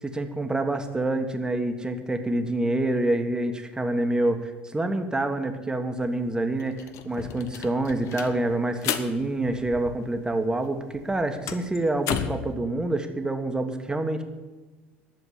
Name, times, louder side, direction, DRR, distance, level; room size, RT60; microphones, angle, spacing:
voice 1, 0.0-6.8 7.0-14.2, right 2 dB, 10° right, 6 dB, 1.5 m, -27 dB
sound 1, 6.0-6.1 6.4-10.3 10.6-12.5, left 9 dB, 55° left, 0.9 m, -34 dB
11.0 x 7.1 x 9.6 m, 1.2 s
hypercardioid pair, 70°, 6 cm